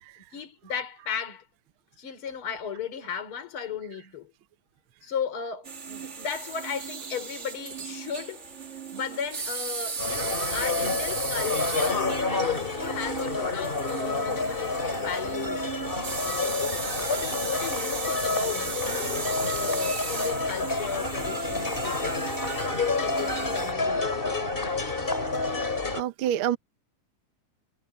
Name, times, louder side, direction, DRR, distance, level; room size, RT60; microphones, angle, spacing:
voice 1, 0.3-1.4 2.0-4.3 5.0-8.5 8.9-12.1 12.4-15.7 16.2-22.4 23.0-25.2, left 7 dB, 40° left, 4.4 m, -35 dB
sound 1, 5.6-23.7, right 5 dB, 35° right, 1.1 m, -36 dB
sound 2, 10.0-26.0, left 3 dB, 15° left, 2.9 m, -29 dB
voice 2, 25.5-26.6, right 11 dB, 75° right, 1.2 m, -28 dB
omnidirectional pair, 3.6 m